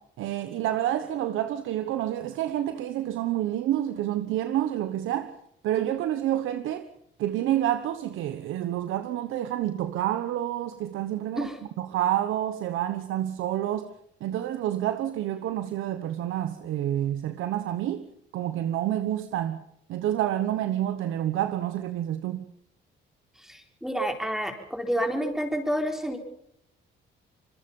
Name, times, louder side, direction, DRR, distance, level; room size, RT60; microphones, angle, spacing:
voice 1, 0.2-5.3 5.6-6.9 7.2-11.5 11.8-13.9 14.2-18.1 18.3-19.6 19.9-22.5, right 12 dB, 85° right, 1.2 m, -28 dB
voice 2, 23.4-26.2, equal, ahead, 4.1 m, -29 dB
26.0 x 21.5 x 5.5 m
cardioid pair, 90°, 20 cm